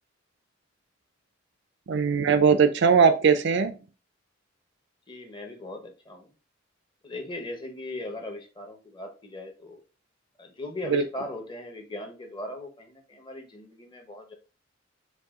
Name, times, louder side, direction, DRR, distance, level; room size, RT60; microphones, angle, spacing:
voice 1, 1.9-3.7 10.9-11.0, right 6 dB, 60° right, 10 dB, 0.5 m, -20 dB
voice 2, 5.1-6.3 7.0-9.8 10.4-14.3, left 1 dB, 25° left, 3 dB, 0.9 m, -39 dB
5.4 x 2.3 x 3.6 m, 0.33 s
head